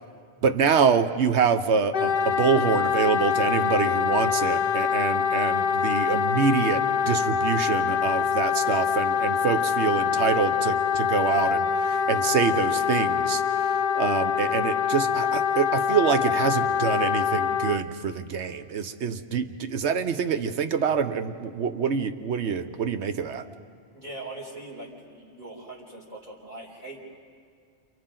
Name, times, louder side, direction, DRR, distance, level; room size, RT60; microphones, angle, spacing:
voice 1, 0.4-13.4 13.9-23.4, right 6 dB, 75° right, 10 dB, 1.1 m, -25 dB
Wind instrument woodwind instrument, 1.9-17.8, left 7 dB, 55° left, 0.7 m, -24 dB
voice 2, 23.9-27.0, right 2 dB, 40° right, -5 dB, 3.8 m, -41 dB
30.0 x 28.0 x 3.9 m, 2.1 s
omnidirectional pair, 1.2 m